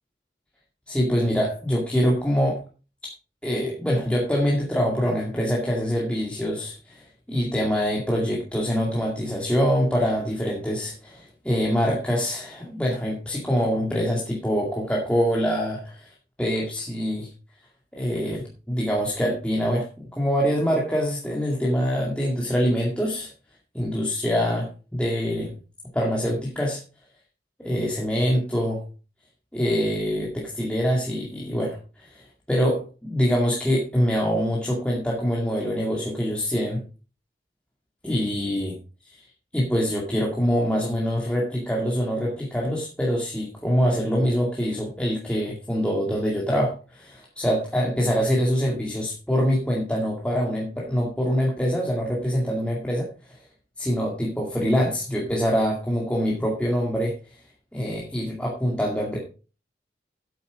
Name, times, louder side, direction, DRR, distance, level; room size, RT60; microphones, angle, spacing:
voice 1, 0.9-2.6 3.4-16.1 16.4-17.3 17.9-19.9 20.1-23.3 23.7-25.5 25.9-26.8 27.6-28.8 29.5-36.8 38.0-38.7 39.1-39.2 39.5-53.4 53.8-57.2 57.7-59.2, equal, 5° left, -3 dB, 2.1 m, -24 dB
8.9 x 8.4 x 5.0 m, 0.34 s
head